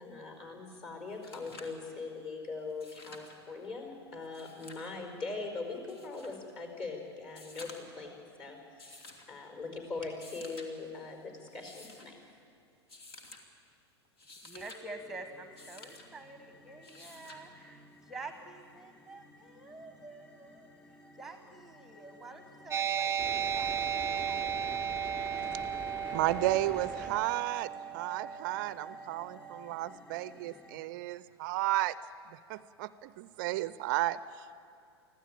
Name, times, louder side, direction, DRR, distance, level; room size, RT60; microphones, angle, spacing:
voice 1, 0.0-12.2, left 3 dB, 35° left, 3 dB, 4.9 m, -41 dB
sound 1, 0.7-0.8 1.1-1.8 2.7-3.4 4.2-4.9 5.9-6.4 7.3-8.0 8.8-9.3 10.1-10.7 11.5-12.1 12.9-13.4 14.0-14.8 15.6-16.1 16.8-17.4 18.9-19.0, left 2 dB, 60° left, 2.7 m, -51 dB
voice 2, 14.4-20.7 21.2-25.0 25.3-25.5, right 2 dB, 5° right, 7 dB, 1.2 m, -48 dB
sound 2, 15.0-30.8, left 1 dB, 15° left, 3.6 m, -50 dB
sound 3, 22.7-29.8, right 8 dB, 20° right, 0.8 m, -35 dB
voice 3, 26.1-32.0 32.3-34.6, right 15 dB, 45° right, 17 dB, 0.5 m, -33 dB
24.5 x 15.5 x 8.9 m, 2.4 s
figure-of-eight pair, 90°, 14 cm